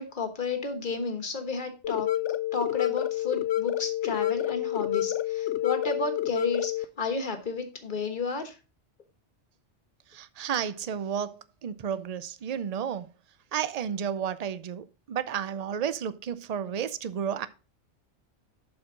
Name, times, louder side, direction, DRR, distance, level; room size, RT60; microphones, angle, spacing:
voice 1, 0.0-2.1 2.5-8.6, left 4 dB, 45° left, 1.4 m, -32 dB
sound 1, 1.8-6.8, left 13 dB, 85° left, 0.9 m, -28 dB
voice 2, 10.1-13.1 13.5-17.5, right 8 dB, 50° right, 0.5 m, -32 dB
11.5 x 4.6 x 3.8 m
omnidirectional pair, 1.2 m